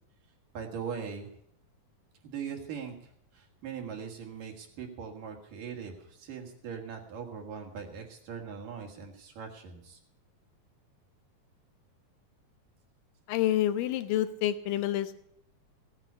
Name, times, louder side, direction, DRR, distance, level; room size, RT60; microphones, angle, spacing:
voice 1, 0.5-1.3 2.2-10.0, right 6 dB, 70° right, 1 dB, 3.5 m, -41 dB
voice 2, 13.3-15.2, left 12 dB, 75° left, 12 dB, 2.5 m, -28 dB
16.0 x 9.3 x 6.8 m, 0.69 s
omnidirectional pair, 4.0 m